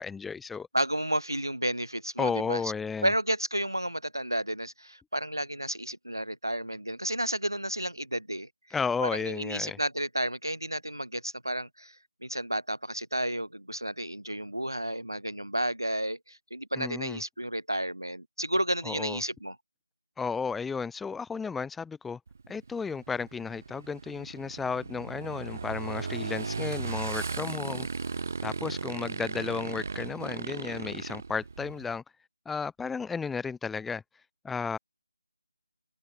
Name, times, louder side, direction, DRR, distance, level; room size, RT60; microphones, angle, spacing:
voice 1, 0.0-0.7 2.2-3.1 8.7-9.8 16.8-17.2 18.8-19.2 20.2-22.2 22.5-27.9 28.4-32.0 32.5-34.0 34.4-34.8, left 5 dB, 5° left, 0.6 m, -33 dB
voice 2, 0.7-2.7 3.0-8.5 9.0-12.0 12.2-19.6, right 1 dB, 85° right, 5.7 m, -31 dB
Motorcycle / Engine, 22.3-32.0, right 4 dB, 40° right, 7.3 m, -36 dB
open air
figure-of-eight pair, 160°, 2 cm